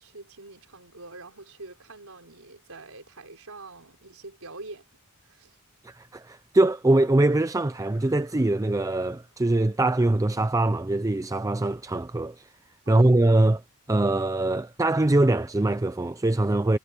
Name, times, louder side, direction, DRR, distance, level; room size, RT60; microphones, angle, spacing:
voice 1, 0.0-4.8 5.2-5.6 12.9-13.1, right 3 dB, 75° right, 4.6 m, -45 dB
sound 1, 0.8-3.8 7.4-11.2, left 3 dB, 75° left, 5.8 m, -65 dB
voice 2, 5.8-12.4 12.9-13.6 13.9-16.8, right 2 dB, 15° right, 0.5 m, -23 dB
head